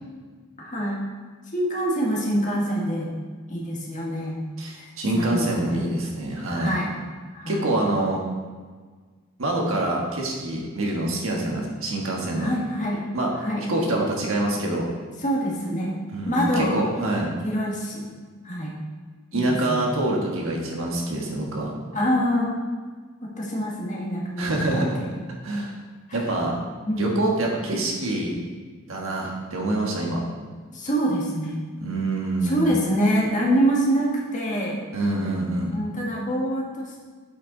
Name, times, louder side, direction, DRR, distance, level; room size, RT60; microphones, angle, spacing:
voice 1, 0.6-1.0 1.5-3.1 3.5-4.4 4.7-4.9 5.1-5.8 6.5-7.0 7.3-7.7 12.4-13.7 15.2-16.0 16.2-16.8 17.4-18.1 18.4-18.7 19.3-19.9 21.9-22.5 23.2-25.1 26.1-26.2 26.8-27.1 30.7-31.6 32.4-34.8 35.7-37.0, equal, 35° left, -3 dB, 1.7 m, -26 dB
voice 2, 4.6-6.7 7.5-8.2 9.4-12.5 13.1-13.3 13.7-14.9 16.1-17.3 19.3-21.7 24.4-24.9 25.4-25.7 26.1-26.6 27.0-28.4 28.9-30.2 31.8-32.7 34.9-35.8, right 1 dB, 65° right, -1 dB, 1.6 m, -25 dB
8.2 x 6.5 x 4.0 m, 1.5 s
head